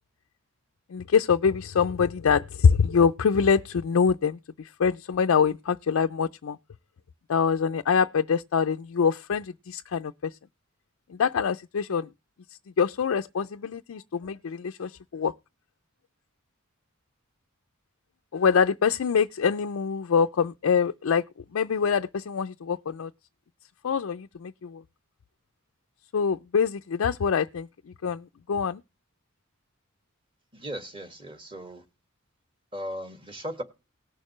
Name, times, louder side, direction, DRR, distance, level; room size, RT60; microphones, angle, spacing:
voice 1, 0.9-6.6 7.3-10.3 11.1-12.1 12.8-15.3 18.3-21.2 21.5-23.1 23.8-24.8 26.1-27.7 28.0-28.8, left 6 dB, 70° left, 0.4 m, -24 dB
voice 2, 30.5-31.8 32.7-33.6, equal, 25° right, 1.7 m, -37 dB
19.0 x 6.5 x 3.0 m
head